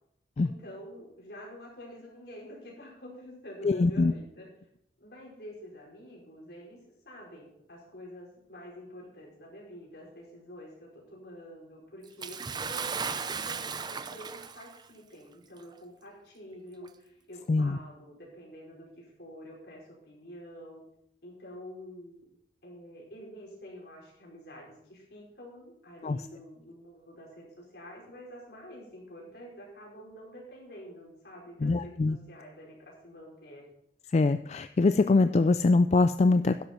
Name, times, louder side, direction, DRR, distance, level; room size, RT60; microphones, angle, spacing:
voice 1, 0.4-4.5 5.0-6.8 7.0-20.8 21.2-22.3 22.6-33.6, equal, 65° left, -3 dB, 4.8 m, -48 dB
voice 2, 3.6-4.1 17.5-17.8 26.0-26.2 31.6-32.2 34.1-36.6, left 3 dB, 40° left, 11 dB, 0.3 m, -23 dB
Bathtub (filling or washing) / Splash splatter, 12.2-14.8 15.7-15.8 16.8-16.9, right 5 dB, 25° right, 0.5 m, -35 dB
12.0 x 10.5 x 4.4 m, 0.75 s
head